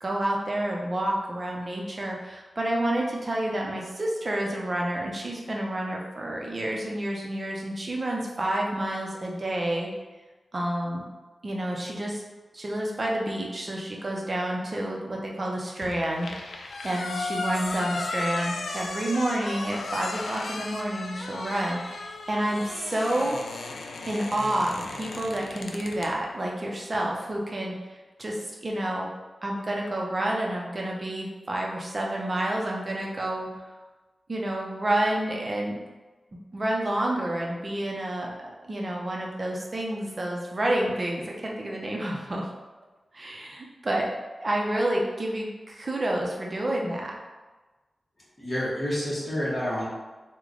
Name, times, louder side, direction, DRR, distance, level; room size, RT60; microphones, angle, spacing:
voice 1, 0.0-9.9 10.5-11.0 11.4-12.2 12.5-23.4 24.1-27.9 28.2-28.4 28.6-29.1 29.4-33.5 34.3-35.8 36.5-42.5 43.1-44.1 44.4-47.2, right 1 dB, 30° right, -2 dB, 0.5 m, -29 dB
sound 1, 15.8-26.1, left 3 dB, 85° left, 0.3 m, -35 dB
voice 2, 48.4-49.9, equal, 25° left, -7 dB, 1.1 m, -28 dB
3.1 x 2.1 x 3.7 m, 1.2 s
wide cardioid pair, 150°, 0 cm